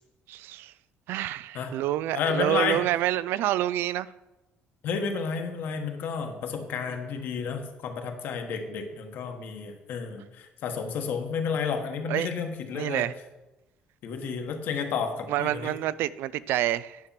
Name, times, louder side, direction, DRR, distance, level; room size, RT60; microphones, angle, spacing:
voice 1, 0.3-0.7 1.1-4.1 12.1-12.3 12.7-13.1 15.3-17.0, right 13 dB, 70° right, 0.3 m, -28 dB
voice 2, 2.1-2.8 4.8-13.1 14.0-15.7, left 6 dB, 60° left, 1.4 m, -31 dB
9.8 x 7.3 x 5.8 m
cardioid pair, 175°, 4 cm